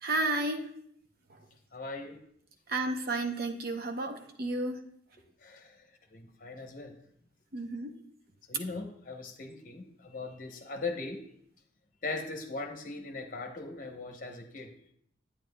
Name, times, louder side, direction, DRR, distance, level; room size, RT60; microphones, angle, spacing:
voice 1, 0.0-0.7 1.3-1.4 2.7-4.8 7.5-7.9, right 2 dB, 50° right, 5 dB, 0.7 m, -32 dB
voice 2, 1.7-2.2 5.4-5.8 6.1-7.0 8.5-11.3 12.0-14.7, left 3 dB, 45° left, 4 dB, 0.9 m, -39 dB
9.0 x 8.7 x 2.2 m, 0.67 s
head